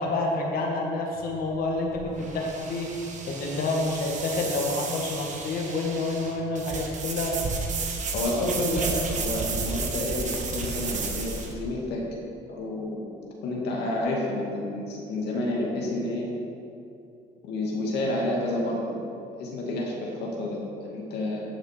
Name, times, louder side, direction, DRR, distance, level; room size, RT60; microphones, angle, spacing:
voice 1, 0.0-2.9 3.2-7.4, left 2 dB, 60° left, 0 dB, 1.8 m, -28 dB
sound 1, 1.2-11.5, right 4 dB, 45° right, 1.5 m, -33 dB
voice 2, 8.1-12.0 12.5-13.0 13.4-16.3 17.4-18.9 19.4-21.4, left 1 dB, 80° left, -2 dB, 2.3 m, -29 dB
11.0 x 7.0 x 5.1 m, 2.6 s
cardioid pair, 110°, 17 cm